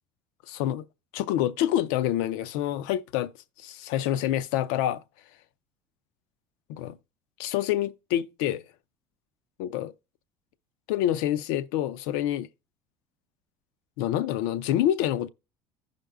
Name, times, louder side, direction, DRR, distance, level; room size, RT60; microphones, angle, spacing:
voice 1, 0.5-0.9 1.1-3.3 3.6-5.0 6.7-6.9 7.4-8.6 9.6-9.9 10.9-12.5 14.0-15.3, left 12 dB, 85° left, 0.4 m, -27 dB
15.0 x 5.1 x 2.2 m
cardioid pair, 130°, 10 cm